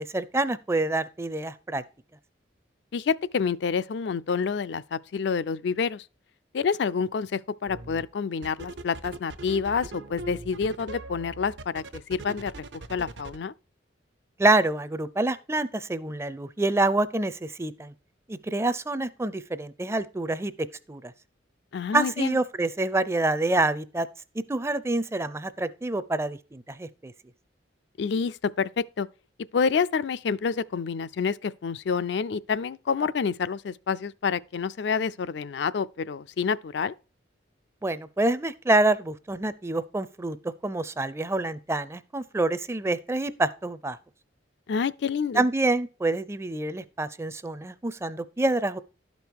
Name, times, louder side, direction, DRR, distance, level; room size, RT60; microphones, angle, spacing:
voice 1, 0.0-1.8 14.4-17.9 18.3-20.5 20.9-21.1 21.9-24.1 24.5-27.1 37.8-40.4 40.6-44.0 45.3-48.8, right 2 dB, 15° right, 0.4 m, -27 dB
voice 2, 2.9-6.0 6.5-11.8 12.1-12.6 12.9-13.5 21.7-22.4 28.0-29.1 29.5-36.9 44.7-45.4, left 5 dB, 65° left, 0.4 m, -28 dB
sound 1, 7.7-8.0 8.4-13.4, right 3 dB, 70° right, 0.8 m, -40 dB
12.0 x 5.3 x 4.6 m
head